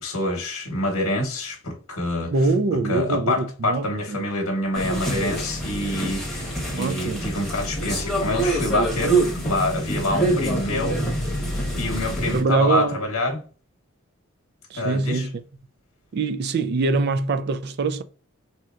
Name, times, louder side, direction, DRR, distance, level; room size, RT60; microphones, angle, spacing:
voice 1, 0.0-2.3 2.9-11.0 11.3-11.4 11.7-13.4 14.7-15.3, left 1 dB, 80° left, 1.0 m, -26 dB
voice 2, 2.2-4.2 6.7-7.3 12.3-13.0 14.7-15.4 16.1-18.0, right 3 dB, 50° right, 0.3 m, -24 dB
sound 1, 4.7-12.4, right 2 dB, ahead, 1.0 m, -26 dB
4.2 x 2.8 x 2.4 m
head